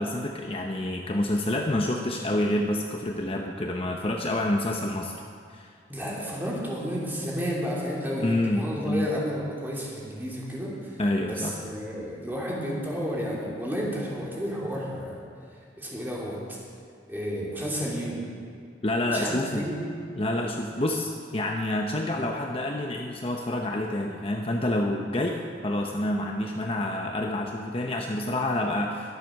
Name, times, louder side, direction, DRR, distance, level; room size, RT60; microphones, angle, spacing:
voice 1, 0.0-5.1 5.5-5.7 8.2-9.1 11.0-11.6 18.8-19.6 20.2-29.1, left 1 dB, 30° left, 2 dB, 0.7 m, -28 dB
voice 2, 5.9-10.9 11.2-15.2 15.8-16.6 17.1-18.2 19.1-19.8, equal, 10° right, -5 dB, 3.0 m, -31 dB
21.5 x 7.5 x 6.4 m, 2.3 s
head